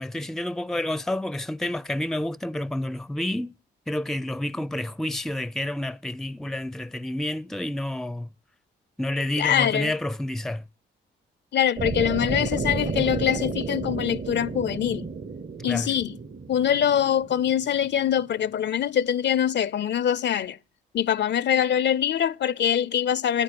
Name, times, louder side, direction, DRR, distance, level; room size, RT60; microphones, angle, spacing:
voice 1, 0.0-3.5 3.9-8.3 9.0-10.6 15.7-15.9, left 1 dB, ahead, 0.5 m, -29 dB
voice 2, 9.4-9.9 11.5-15.1 15.6-16.2 16.5-20.6 20.9-23.4, left 9 dB, 55° left, 0.5 m, -24 dB
sound 1, 11.8-17.9, right 4 dB, 40° right, 1.0 m, -32 dB
10.0 x 9.7 x 7.5 m
supercardioid pair, 55°, 21 cm